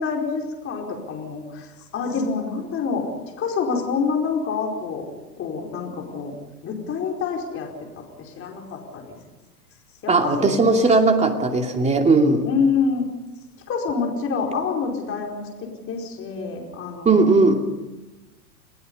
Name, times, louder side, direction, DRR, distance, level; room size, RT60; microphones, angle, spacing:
voice 1, 0.0-1.7 1.9-3.0 3.4-5.1 5.4-6.3 6.6-7.7 8.0-9.2 10.0-10.6 12.4-13.1 13.7-17.3, left 5 dB, 25° left, 1 dB, 4.8 m, -27 dB
voice 2, 10.1-12.5 17.0-17.5, right 3 dB, 15° right, 4 dB, 2.7 m, -17 dB
29.0 x 20.0 x 5.5 m, 1.1 s
hypercardioid pair, 120°, 48 cm